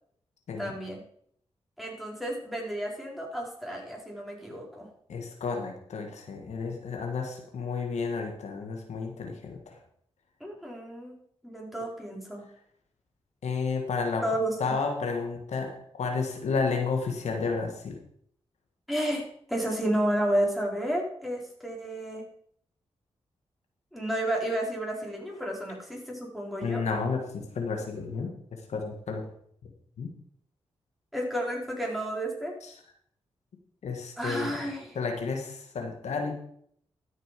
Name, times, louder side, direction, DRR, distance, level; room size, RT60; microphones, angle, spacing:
voice 1, 0.6-1.0 1.8-4.9 10.4-11.1 11.4-12.4 14.2-14.7 18.9-22.3 23.9-26.8 31.1-32.5 34.2-35.0, right 1 dB, ahead, -2 dB, 4.7 m, -31 dB
voice 2, 5.1-9.8 13.4-14.2 14.6-18.0 26.6-28.3 28.7-29.2 30.0-30.1 32.6-32.7 33.8-34.6 35.0-36.3, left 4 dB, 80° left, 2 dB, 1.8 m, -31 dB
13.0 x 6.6 x 5.2 m, 0.66 s
cardioid pair, 50°, 11 cm